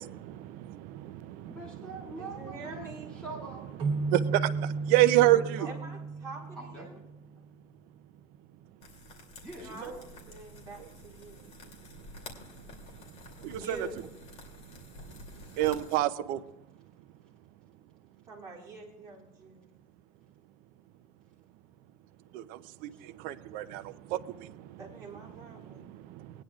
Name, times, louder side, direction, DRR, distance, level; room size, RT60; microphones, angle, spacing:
voice 1, 0.0-1.6 4.0-5.7 13.4-13.9 15.4-16.4 22.3-24.8 25.5-26.4, right 15 dB, 65° right, 13 dB, 0.6 m, -29 dB
voice 2, 1.4-3.6 5.3-5.7 6.5-7.3 9.4-10.1 22.9-23.0, right 2 dB, 5° left, -4 dB, 2.7 m, -44 dB
voice 3, 2.2-3.2 5.6-6.9 9.6-11.5 13.5-14.0 18.3-19.7 24.8-25.9, right 2 dB, 20° right, -5 dB, 4.2 m, -46 dB
sound 1, 3.8-7.3, right 4 dB, 40° right, 2.6 m, -34 dB
sound 2, 8.8-16.0, left 2 dB, 40° left, 2.7 m, -50 dB
20.0 x 10.0 x 2.4 m, 0.95 s
cardioid pair, 165°, 16 cm